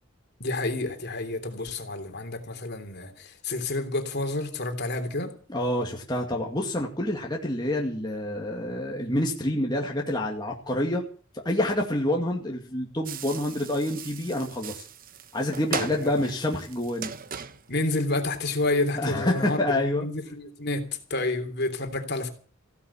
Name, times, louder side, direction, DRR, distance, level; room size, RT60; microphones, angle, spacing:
voice 1, 0.4-5.3 16.0-16.1 17.7-20.8 21.1-22.3, left 2 dB, 50° left, 3.3 m, -29 dB
voice 2, 5.5-11.0 11.3-14.8 15.3-17.1 19.0-20.1, left 1 dB, 20° left, 2.2 m, -27 dB
sound 1, 13.1-18.8, right 7 dB, 40° right, 0.9 m, -39 dB
16.0 x 11.5 x 7.2 m
head